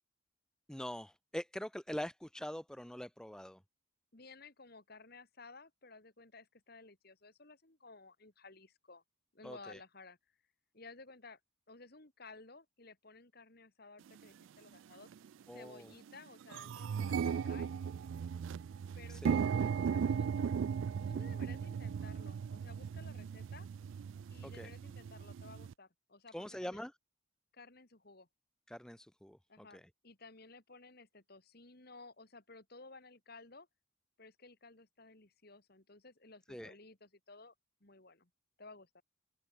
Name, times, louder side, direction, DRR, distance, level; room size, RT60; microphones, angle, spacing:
voice 1, 0.7-3.6 9.4-9.8 15.5-15.9 19.1-19.4 24.4-24.7 26.3-26.9 28.7-29.8 36.5-36.7, equal, 5° left, 0.5 m, -44 dB
voice 2, 4.1-9.0 9.3-10.2 10.7-11.4 11.7-15.1 15.5-17.7 19.0-20.6 21.0-23.7 24.3-26.9 27.5-28.3 29.5-33.7 34.2-37.5 37.8-38.3 38.6-39.0, left 3 dB, 45° left, 2.2 m, -56 dB
sound 1, 14.2-14.3 15.0-15.3 15.7-15.8 16.0-25.7, right 7 dB, 65° right, 0.3 m, -37 dB
open air
head